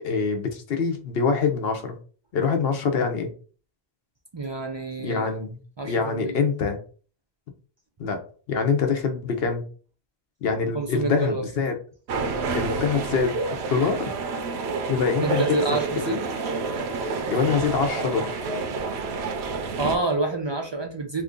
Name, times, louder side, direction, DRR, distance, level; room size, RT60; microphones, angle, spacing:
voice 1, 0.0-2.0 2.3-3.3 5.0-5.6 5.8-6.8 8.0-8.2 8.5-9.6 10.4-11.7 12.5-14.1 14.9-15.4 15.7-15.8 16.1-16.2 17.3-18.5, left 5 dB, 70° left, 5 dB, 0.9 m, -25 dB
voice 2, 4.3-5.3 5.8-6.4 10.7-11.4 15.2-16.2 19.8-21.2, right 3 dB, 45° right, 2 dB, 0.3 m, -28 dB
sound 1, 12.1-20.0, right 4 dB, 80° right, 0.8 m, -29 dB
2.9 x 2.5 x 3.6 m, 0.40 s
omnidirectional pair, 1.1 m